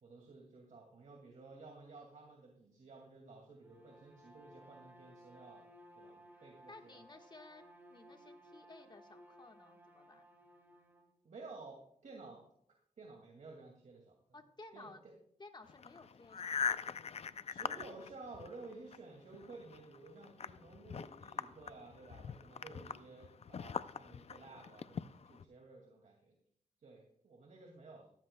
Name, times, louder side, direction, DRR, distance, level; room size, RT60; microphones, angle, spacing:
voice 1, 0.0-5.7 6.0-7.0 11.2-12.5 13.0-14.2 14.7-15.1 17.3-26.4 26.8-28.1, right 3 dB, 65° right, 0 dB, 2.2 m, -54 dB
Bowed string instrument, 3.6-11.1, equal, 15° right, 2.6 m, -59 dB
voice 2, 6.3-7.6 7.9-10.3 14.3-15.0 15.4-16.9, left 2 dB, 35° left, 5 dB, 1.4 m, -56 dB
sound 1, 15.7-19.0 19.3-25.4, left 7 dB, 50° left, 0.5 m, -42 dB
16.0 x 14.0 x 2.2 m, 0.67 s
wide cardioid pair, 95°, 13 cm